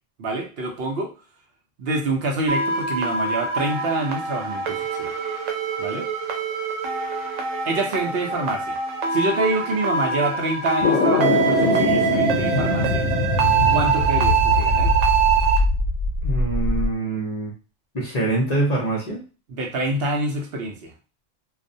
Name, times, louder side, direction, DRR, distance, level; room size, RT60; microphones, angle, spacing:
voice 1, 0.2-1.1 1.8-5.1 5.8-6.1 7.7-8.8 9.1-13.1 13.7-15.0 19.5-20.9, right 2 dB, 65° right, 2 dB, 0.7 m, -26 dB
sound 1, 2.5-15.6, right 6 dB, 90° right, 1.0 m, -24 dB
sound 2, 10.8-16.9, left 3 dB, 80° left, 0.9 m, -22 dB
voice 2, 16.2-17.5 17.9-19.2, right 2 dB, 45° left, -3 dB, 0.6 m, -24 dB
2.3 x 2.1 x 2.6 m, 0.33 s
omnidirectional pair, 1.3 m